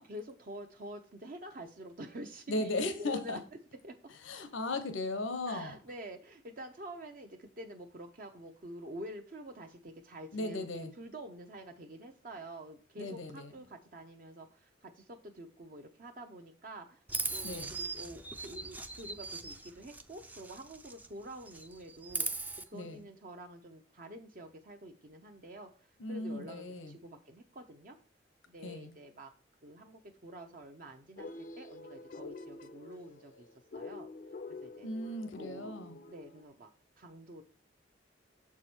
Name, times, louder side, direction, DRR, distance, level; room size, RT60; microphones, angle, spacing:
voice 1, 0.1-3.4 3.8-3.9 5.5-17.0 17.3-22.3 22.7-28.0 28.5-29.3 29.6-33.5 33.7-34.1 34.6-34.9 35.4-35.7 36.1-36.7 37.0-37.4, right 1 dB, 45° right, 3 dB, 0.7 m, -47 dB
voice 2, 2.5-3.4 4.2-5.7 10.3-10.9 13.0-13.5 17.4-17.7 22.7-23.1 26.0-26.9 28.6-28.9 34.8-36.0, left 2 dB, 85° left, 9 dB, 0.9 m, -37 dB
Chirp tweet, 17.1-21.1 21.4-22.6, right 3 dB, 10° right, 0.4 m, -39 dB
sound 1, 31.2-36.4, left 3 dB, 45° left, 0.5 m, -47 dB
7.1 x 4.8 x 4.4 m, 0.39 s
head